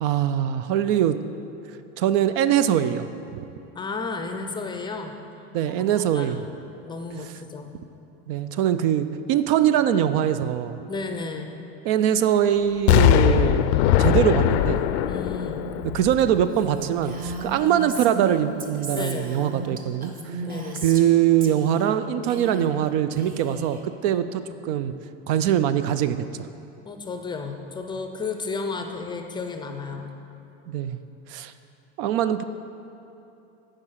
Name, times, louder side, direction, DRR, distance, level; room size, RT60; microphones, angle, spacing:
voice 1, 0.0-1.2 2.0-3.4 5.5-6.4 8.3-10.8 11.8-13.7 14.0-14.8 15.9-20.1 20.8-24.9 25.3-26.2 30.7-31.0 31.3-31.5 32.0-32.4, right 10 dB, 60° right, 12 dB, 0.5 m, -22 dB
voice 2, 3.7-5.1 5.7-7.8 10.9-11.5 15.1-15.7 18.9-19.3 20.4-20.9 24.1-24.5 26.9-30.1, left 4 dB, 15° left, 5 dB, 0.5 m, -33 dB
Explosion, 12.9-16.8 17.3-17.4, left 11 dB, 85° left, 0.5 m, -20 dB
Female speech woman speaking, 16.5-21.1 21.4-22.0 22.2-22.9 23.2-23.8, right 3 dB, 25° right, 0.8 m, -35 dB
9.7 x 5.0 x 6.4 m, 2.9 s
supercardioid pair, 130°, 31 cm